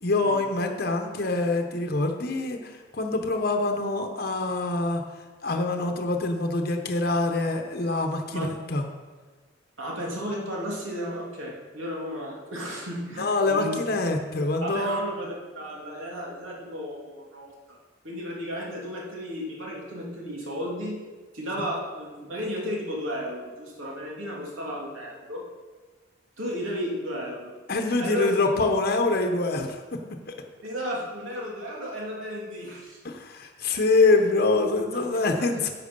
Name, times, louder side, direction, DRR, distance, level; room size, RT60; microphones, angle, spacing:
voice 1, 0.0-5.0 5.4-8.8 13.2-15.0 27.7-30.0 33.0-35.7, left 3 dB, 50° left, 4 dB, 0.9 m, -25 dB
voice 2, 9.8-13.8 14.6-17.8 18.0-21.0 21.3-25.4 26.4-27.5 28.0-28.5 30.6-33.0 34.9-35.0 35.4-35.6, equal, 80° right, -3 dB, 2.7 m, -34 dB
10.5 x 7.6 x 5.4 m, 1.4 s
head